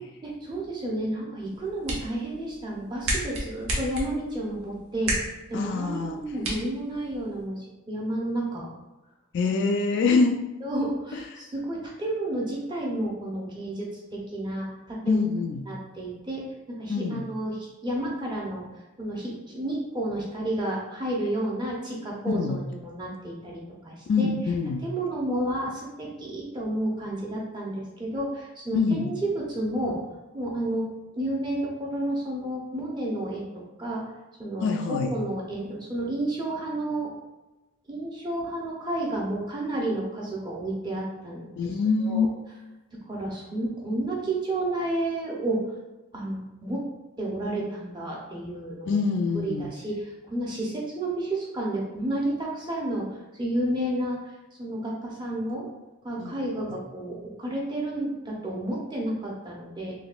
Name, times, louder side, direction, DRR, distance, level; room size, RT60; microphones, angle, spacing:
voice 1, 0.2-5.1 5.5-8.7 10.6-15.2 15.7-24.3 24.8-30.0 30.3-30.9 31.2-34.0 34.4-37.1 37.9-41.7 42.0-42.3 43.1-45.6 46.1-46.8 47.2-48.9 49.3-55.7 56.0-59.9, right 1 dB, 20° right, -3 dB, 0.7 m, -31 dB
sound 1, 1.4-7.5, right 1 dB, 65° right, 0.9 m, -34 dB
voice 2, 5.5-6.2 9.3-10.4 11.1-11.5 15.0-15.6 16.9-17.2 22.3-22.6 24.1-24.8 28.7-29.1 34.6-35.1 41.6-42.3 48.9-49.6 56.2-56.3, left 4 dB, 55° left, 4 dB, 0.3 m, -25 dB
4.0 x 2.7 x 2.3 m, 1.0 s
head